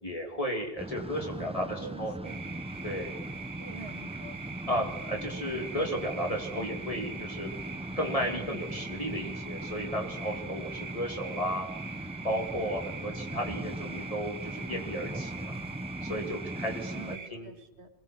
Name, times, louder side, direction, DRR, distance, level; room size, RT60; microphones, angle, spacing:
voice 1, 0.0-2.1 2.8-3.1 4.7-7.5 8.0-11.7 12.2-15.6 16.0-17.5, equal, 35° left, 0 dB, 2.8 m, -34 dB
sound 1, 0.8-17.2, right 1 dB, 5° right, 0.6 m, -40 dB
voice 2, 1.2-2.4 3.6-4.4 16.9-17.9, right 4 dB, 85° right, 6 dB, 2.2 m, -47 dB
sound 2, 2.2-17.3, right 5 dB, 40° right, 0.8 m, -43 dB
28.0 x 21.0 x 4.5 m, 0.87 s
omnidirectional pair, 1.1 m